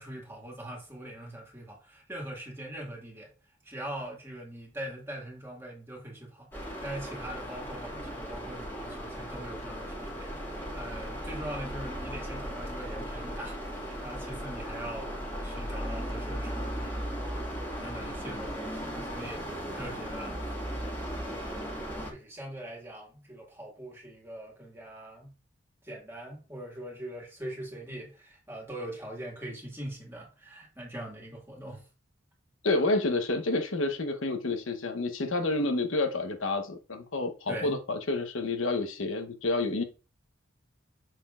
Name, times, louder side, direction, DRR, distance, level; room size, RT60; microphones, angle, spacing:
voice 1, 0.0-3.3 3.6-21.7 22.1-25.3 25.8-31.8 37.5-37.8, right 1 dB, 10° right, 1.9 m, -42 dB
sound 1, 6.5-22.1, equal, 10° left, 1.7 m, -37 dB
voice 2, 32.6-39.8, left 2 dB, 75° left, 1.0 m, -29 dB
6.5 x 6.0 x 2.4 m
head